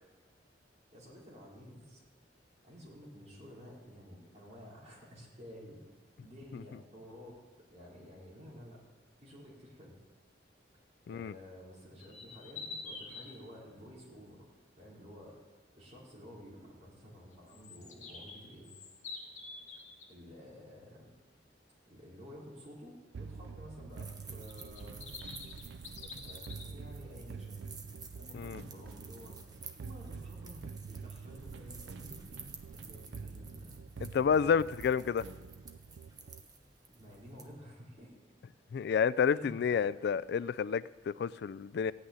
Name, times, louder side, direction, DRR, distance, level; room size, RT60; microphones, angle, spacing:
voice 1, 0.9-2.0 2.6-5.8 6.2-7.4 7.7-8.8 9.2-10.0 11.0-18.7 19.8-21.1 21.9-25.0 25.9-27.7 28.1-29.4 29.8-33.8 37.0-38.1 39.3-39.9, equal, 40° right, 4.7 m, -52 dB
sound 1, 12.0-13.3 17.5-20.1 24.4-26.6, left 4 dB, 40° left, 2.0 m, -46 dB
sound 2, 23.1-36.4, right 5 dB, 90° right, 0.4 m, -47 dB
sound 3, 23.9-37.5, right 4 dB, 20° right, 1.2 m, -53 dB
voice 2, 34.0-35.2 38.7-41.9, left 6 dB, 65° left, 0.3 m, -30 dB
15.5 x 6.4 x 9.5 m
head